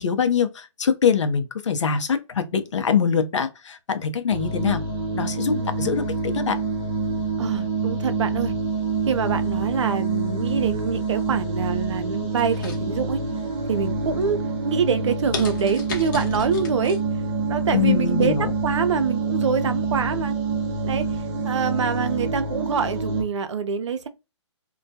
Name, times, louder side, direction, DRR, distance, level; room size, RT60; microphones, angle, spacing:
voice 1, 0.0-4.8 5.1-6.6 17.7-18.5, left 7 dB, 75° left, 0.6 m, -23 dB
sound 1, 4.3-23.2, right 3 dB, 20° right, 0.6 m, -27 dB
voice 2, 7.4-8.5 9.1-13.2 13.7-17.0 17.5-20.3 20.8-21.1 21.4-24.1, right 6 dB, 75° right, 0.5 m, -25 dB
sound 2, 12.4-13.4 13.8-14.2 14.7-14.8 15.3-17.0 17.4-17.5, left 4 dB, 40° left, 0.7 m, -35 dB
2.2 x 2.1 x 2.6 m
hypercardioid pair, 145°, 15 cm